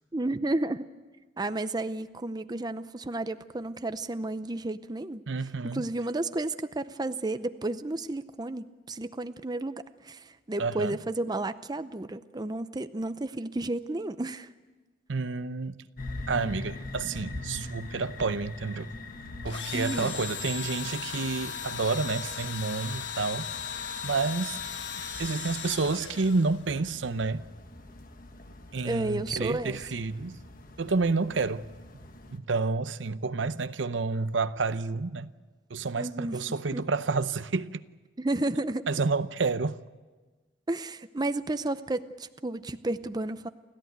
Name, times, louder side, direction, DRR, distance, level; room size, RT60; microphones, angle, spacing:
voice 1, 0.1-0.8 1.4-5.2 5.6-14.5 19.7-20.2 28.8-29.8 36.0-36.4 36.7-36.8 38.2-38.8 40.7-43.5, right 2 dB, 20° right, 0.6 m, -32 dB
voice 2, 5.3-5.8 10.6-11.0 15.1-15.8 16.3-18.9 19.4-23.5 24.0-24.6 25.2-27.5 28.7-30.4 30.8-31.6 32.3-35.3 35.7-37.8 38.9-39.8, right 4 dB, 85° right, 0.7 m, -29 dB
sound 1, 16.0-32.4, left 2 dB, 50° left, 1.5 m, -44 dB
Engine / Drill, 19.5-26.8, left 7 dB, 75° left, 1.5 m, -37 dB
29.5 x 14.0 x 9.4 m
head